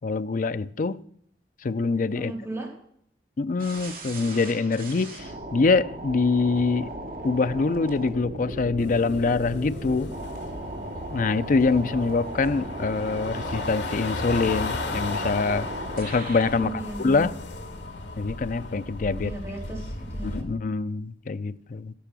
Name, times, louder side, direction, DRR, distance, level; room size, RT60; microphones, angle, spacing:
voice 1, 0.0-1.0 1.6-2.3 3.4-6.9 7.2-10.1 11.1-15.7 15.9-17.3 18.2-19.3 20.2-21.9, left 4 dB, 45° left, 0.5 m, -25 dB
voice 2, 2.1-2.7 16.6-17.3 19.2-20.5, right 1 dB, 15° right, 3.5 m, -36 dB
sound 1, 3.6-16.7, right 1 dB, 50° right, 2.7 m, -37 dB
sound 2, 8.8-20.4, left 2 dB, 80° left, 2.0 m, -35 dB
13.5 x 10.5 x 6.1 m
head